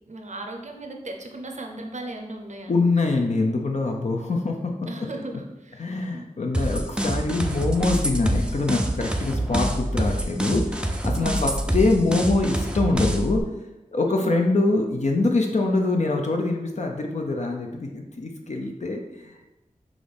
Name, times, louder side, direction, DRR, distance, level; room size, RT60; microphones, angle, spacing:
voice 1, 0.1-2.7 4.9-5.9 6.1-6.3 11.1-11.6 14.1-14.4, right 2 dB, 60° right, 3 dB, 0.7 m, -37 dB
voice 2, 2.7-4.7 5.8-13.4 13.9-19.4, left 2 dB, 55° left, 2 dB, 0.5 m, -24 dB
sound 1, 6.5-13.4, right 1 dB, 5° right, 0.5 m, -26 dB
6.1 x 2.5 x 3.4 m, 0.99 s
wide cardioid pair, 55°, 14 cm